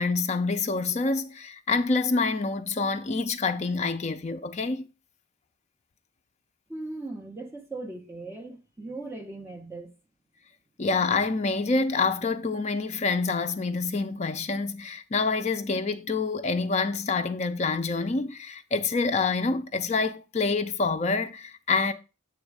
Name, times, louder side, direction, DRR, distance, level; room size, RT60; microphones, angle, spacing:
voice 1, 0.0-4.8 10.8-21.9, left 4 dB, 30° left, 0.4 m, -27 dB
voice 2, 6.7-9.9, right 2 dB, 10° right, 0.9 m, -38 dB
7.1 x 3.1 x 4.7 m
head